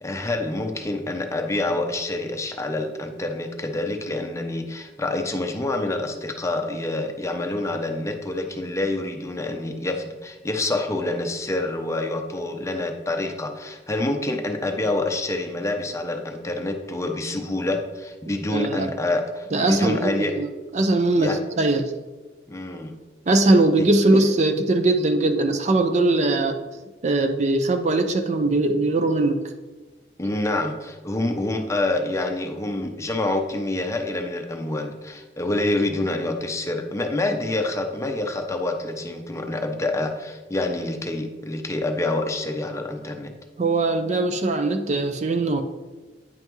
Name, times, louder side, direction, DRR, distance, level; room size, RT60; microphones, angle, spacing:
voice 1, 0.0-20.3 21.2-21.4 22.5-22.9 23.8-23.9 30.2-43.3, left 2 dB, 15° left, 4 dB, 0.6 m, -27 dB
voice 2, 18.5-18.9 19.5-20.5 20.7-21.9 23.3-26.6 27.0-29.4 43.6-45.6, right 2 dB, 40° right, 7 dB, 0.5 m, -21 dB
9.1 x 5.6 x 3.1 m, 1.2 s
head